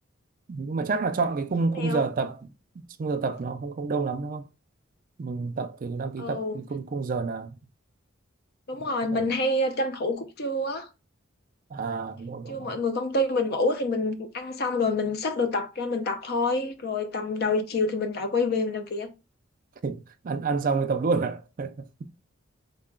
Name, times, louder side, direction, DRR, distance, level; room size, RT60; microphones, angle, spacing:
voice 1, 0.5-2.4 2.8-4.5 5.2-7.6 9.1-9.3 11.7-12.7 19.8-21.7, right 4 dB, 40° right, 0.4 m, -29 dB
voice 2, 1.7-2.0 6.2-6.6 8.7-10.9 12.5-19.1, left 2 dB, 50° left, 0.6 m, -27 dB
3.7 x 2.2 x 3.7 m
head